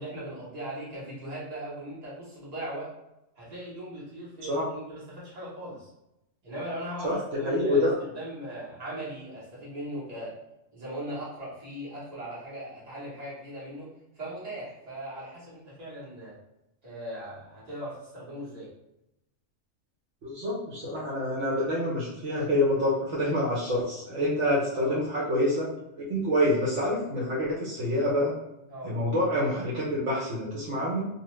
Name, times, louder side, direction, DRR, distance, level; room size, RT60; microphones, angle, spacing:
voice 1, 0.0-2.9 3.4-5.9 6.4-10.4 10.7-13.9 14.1-16.4 16.8-18.7 24.7-25.0 28.7-28.9, right 1 dB, 35° right, -8 dB, 1.3 m, -39 dB
voice 2, 7.4-7.9 20.2-25.7 26.0-28.3 28.8-31.0, left 1 dB, 70° right, -6 dB, 1.1 m, -27 dB
2.6 x 2.3 x 3.0 m, 0.88 s
omnidirectional pair, 1.3 m